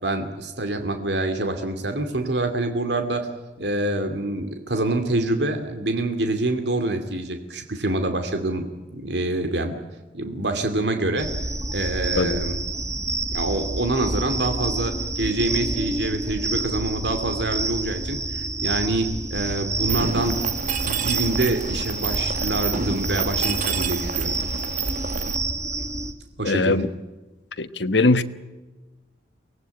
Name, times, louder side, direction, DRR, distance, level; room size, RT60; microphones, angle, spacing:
voice 1, 0.0-3.3 3.6-9.8 10.1-11.3 11.7-12.6 13.3-20.4 20.8-24.4 26.4-26.9, right 2 dB, 70° right, 6 dB, 2.5 m, -26 dB
sound 1, 11.2-26.1, right 2 dB, 20° right, 2.1 m, -28 dB
Mechanisms, 19.9-25.4, right 5 dB, 50° right, 1.6 m, -28 dB
voice 2, 26.4-26.9 27.6-28.2, left 2 dB, 90° left, 10 dB, 1.3 m, -20 dB
24.5 x 19.0 x 9.6 m, 1.2 s
head